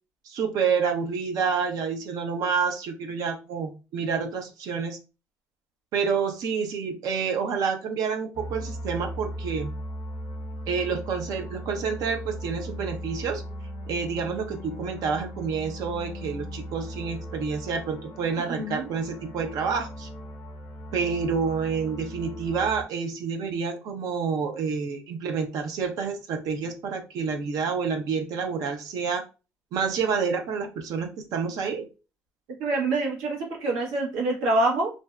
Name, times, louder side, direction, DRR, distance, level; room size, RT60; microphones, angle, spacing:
voice 1, 0.3-5.0 5.9-9.7 10.7-13.4 13.9-20.1 20.9-29.2 29.7-31.9, right 5 dB, 70° right, 5 dB, 0.6 m, -28 dB
sound 1, 8.3-22.9, equal, 75° left, 0.7 m, -38 dB
voice 2, 18.5-18.9 32.6-34.9, right 2 dB, 85° right, -2 dB, 1.0 m, -25 dB
2.5 x 2.1 x 2.3 m, 0.31 s
supercardioid pair, 70°, 7 cm